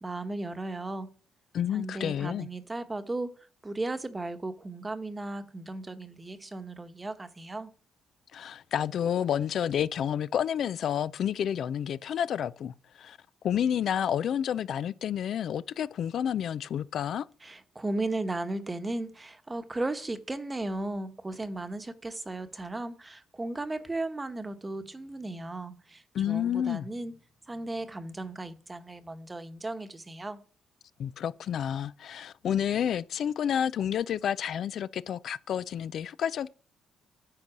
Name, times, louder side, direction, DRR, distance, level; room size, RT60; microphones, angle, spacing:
voice 1, 0.0-1.1 1.7-3.3 3.6-7.7 17.4-27.1 27.5-30.4, right 2 dB, 20° right, 1.0 m, -36 dB
voice 2, 1.5-2.5 8.3-13.2 13.4-17.3 26.1-26.9 31.0-36.5, left 9 dB, 65° left, 0.3 m, -30 dB
9.8 x 4.0 x 7.3 m
cardioid pair, 90°, 0 cm